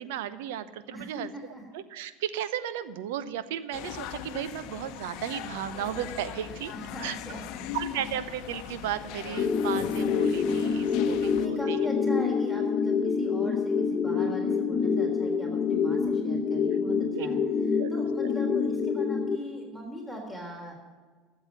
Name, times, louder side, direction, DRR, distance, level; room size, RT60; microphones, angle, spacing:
voice 1, 0.0-1.3 1.7-6.7 7.0-7.1 7.7-11.8 17.1-17.3 17.6-18.3, right 10 dB, 70° right, 14 dB, 0.9 m, -35 dB
voice 2, 0.9-1.6 6.7-7.7 11.2-17.4 17.7-20.7, left 1 dB, 5° right, 0 dB, 3.7 m, -41 dB
sound 1, 3.7-11.5, left 11 dB, 60° left, 0.8 m, -39 dB
sound 2, 9.4-19.4, left 5 dB, 40° left, 1.3 m, -26 dB
12.5 x 7.9 x 9.9 m, 1.4 s
hypercardioid pair, 80°, 0 cm